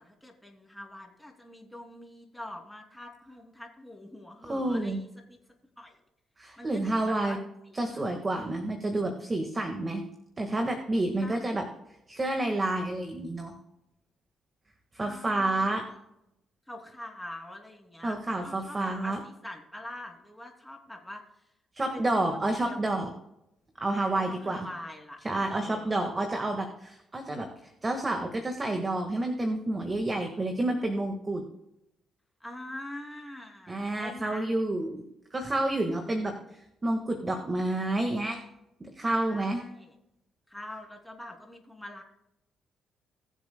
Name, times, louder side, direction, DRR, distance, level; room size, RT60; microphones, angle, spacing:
voice 1, 0.0-5.4 5.8-6.0 6.6-7.4 7.7-8.0 11.1-11.7 15.0-16.0 16.7-21.5 21.9-23.1 24.0-25.2 25.5-26.3 30.1-30.2 32.4-34.5 35.9-36.4 39.0-39.9 40.5-42.0, left 1 dB, 5° left, 2 dB, 2.7 m, -44 dB
voice 2, 4.5-5.0 6.4-7.4 7.7-10.0 10.4-11.7 12.1-13.5 14.9-15.8 18.0-19.2 21.7-23.1 23.8-24.7 25.2-31.4 33.7-35.0 35.3-36.4 36.8-38.4 38.8-39.6, right 2 dB, 25° right, 4 dB, 1.6 m, -29 dB
21.5 x 7.3 x 2.2 m, 0.83 s
cardioid pair, 90°, 0 cm